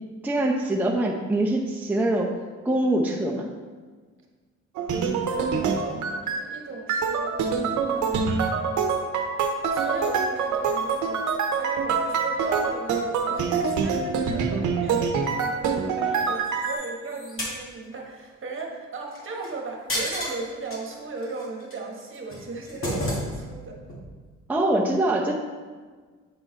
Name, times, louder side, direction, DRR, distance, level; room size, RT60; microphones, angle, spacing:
voice 1, 0.2-2.3 2.6-3.5 24.5-25.3, right 1 dB, 5° right, -2 dB, 0.7 m, -23 dB
sound 1, 4.7-6.4 6.9-16.7, right 5 dB, 75° right, 0.8 m, -25 dB
voice 2, 4.9-7.4 7.9-8.6 9.7-11.3 11.5-23.8, right 3 dB, 40° right, 0 dB, 1.4 m, -36 dB
sound 2, 16.3-17.6 19.1-19.5 19.9-20.8 21.2-21.7 22.1-23.6 23.9-24.0, equal, 45° left, 2.1 m, -31 dB
8.6 x 3.8 x 4.0 m, 1.5 s
cardioid pair, 90°, 30 cm